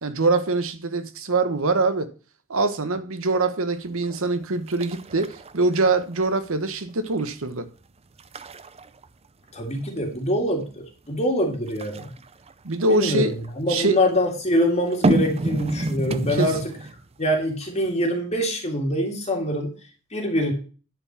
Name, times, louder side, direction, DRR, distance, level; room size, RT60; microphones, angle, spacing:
voice 1, 0.0-2.1 2.5-7.7 12.6-13.3 13.7-14.0 16.4-16.5, right 3 dB, 65° right, 1.1 m, -23 dB
sound 1, 4.0-4.4 4.7-6.4 6.8-7.2 7.7-7.8 8.2-10.1 11.7-13.5 14.8-17.1 17.4-17.5, right 2 dB, 30° right, 0.5 m, -28 dB
voice 2, 9.5-12.1 12.9-16.6 17.2-19.7 20.1-20.5, equal, 30° left, 2.2 m, -24 dB
10.5 x 4.7 x 7.2 m
head